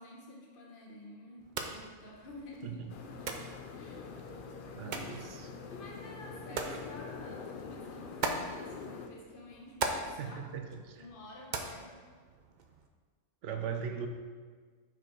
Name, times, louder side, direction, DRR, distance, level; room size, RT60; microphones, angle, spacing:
voice 1, 0.0-3.1 3.7-4.2 4.8-5.2 5.7-10.5 11.0-12.0, left 2 dB, 40° left, -1 dB, 1.1 m, -50 dB
sound 1, 1.4-12.9, right 4 dB, 85° right, 0.4 m, -42 dB
sound 2, 2.9-9.1, left 5 dB, 65° left, 0.5 m, -45 dB
voice 2, 4.7-5.5 10.2-11.1 13.4-14.1, right 7 dB, 65° right, 5 dB, 0.9 m, -39 dB
6.1 x 4.9 x 4.5 m, 1.6 s
omnidirectional pair, 1.5 m